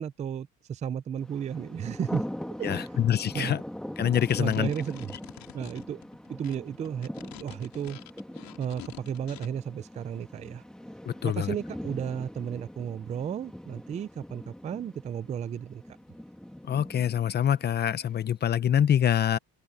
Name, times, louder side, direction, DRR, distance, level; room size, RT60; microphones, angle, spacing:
voice 1, 0.0-2.2 2.6-2.9 3.3-3.5 4.4-5.1 5.5-6.0 6.3-7.1 7.4-8.0 8.6-10.6 11.2-15.8, right 8 dB, 20° right, 0.3 m, -33 dB
Thunder, 1.2-18.2, equal, ahead, 1.6 m, -42 dB
voice 2, 2.6-3.6 4.0-4.7 11.1-11.5 16.7-19.4, left 9 dB, 25° left, 0.6 m, -25 dB
sound 1, 3.9-9.5, left 14 dB, 55° left, 4.6 m, -48 dB
cardioid pair, 170°, 41 cm